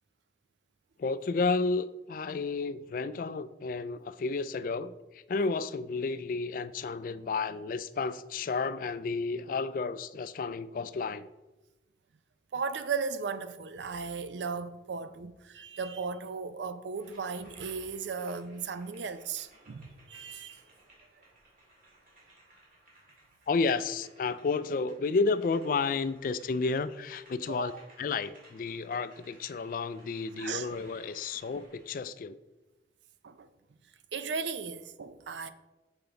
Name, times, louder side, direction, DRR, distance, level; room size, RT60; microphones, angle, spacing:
voice 1, 1.0-11.3 23.5-27.7 28.0-32.4, left 4 dB, 50° left, 0.3 m, -31 dB
voice 2, 12.5-20.6 27.5-27.8 30.4-30.7 33.2-33.5 34.1-35.5, right 5 dB, 85° right, 0.5 m, -36 dB
sound 1, 16.9-32.0, right 1 dB, 50° right, 2.2 m, -60 dB
6.8 x 5.7 x 3.9 m
head